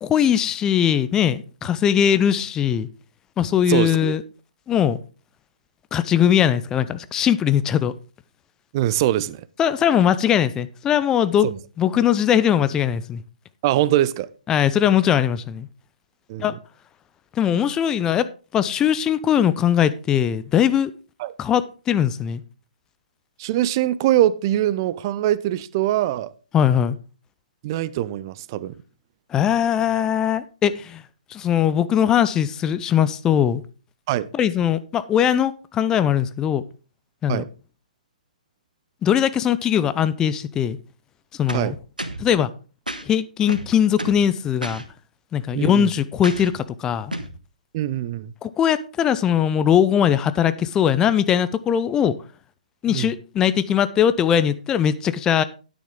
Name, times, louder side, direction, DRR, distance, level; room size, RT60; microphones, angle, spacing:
voice 1, 0.0-2.9 3.4-4.2 4.7-5.0 5.9-7.9 9.6-13.2 14.5-15.7 16.4-16.5 17.3-18.3 18.5-20.9 21.4-22.4 26.5-27.0 29.3-31.0 31.3-33.6 34.3-36.6 37.2-37.4 39.0-40.8 41.3-41.8 42.2-42.5 43.0-44.8 45.3-47.1 48.4-52.1 52.8-55.4, left 9 dB, 15° left, 0.5 m, -20 dB
voice 2, 3.7-4.1 8.7-9.4 13.6-14.3 16.3-16.4 21.2-21.3 23.4-26.3 27.6-28.7 34.1-34.3 37.3-37.5 41.5-41.7 45.5-45.9 47.7-48.3 52.9-53.1, right 13 dB, 30° right, 0.6 m, -22 dB
sound 1, 41.5-42.3 42.9-43.0 43.5-44.3 44.6-44.8 46.2-46.6 47.1-47.4, right 1 dB, 90° right, 1.4 m, -31 dB
10.0 x 9.4 x 3.7 m
figure-of-eight pair, 130°, 4 cm